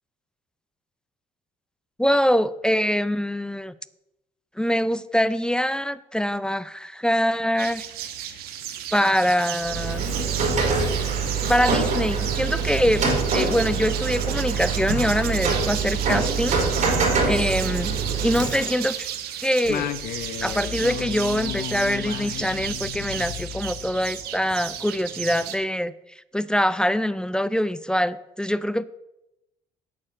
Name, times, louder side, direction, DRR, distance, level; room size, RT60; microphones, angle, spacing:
voice 1, 2.0-3.7 4.6-7.8 8.9-10.0 11.5-13.0 13.3-16.9 17.2-18.0 18.2-19.1 19.4-19.9 20.4-25.9 26.3-28.8, equal, 5° left, 16 dB, 0.5 m, -24 dB
sound 1, 7.6-25.6, right 10 dB, 75° right, 1.1 m, -34 dB
Rain, 9.6-18.9, right 4 dB, 50° right, 4.6 m, -25 dB
Singing, 19.6-24.4, left 11 dB, 70° left, 0.8 m, -34 dB
8.6 x 6.8 x 8.0 m, 0.89 s
supercardioid pair, 90°, 16 cm